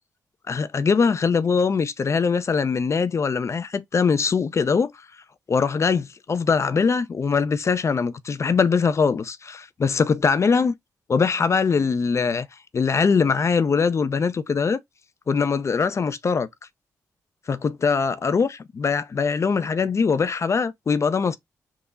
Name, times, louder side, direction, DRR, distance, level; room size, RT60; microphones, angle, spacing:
voice 1, 0.5-4.9 5.5-10.7 11.1-12.5 12.7-14.8 15.3-16.5 17.5-21.4, left 5 dB, 45° left, 0.4 m, -22 dB
3.6 x 2.0 x 3.7 m
supercardioid pair, 55°, 7 cm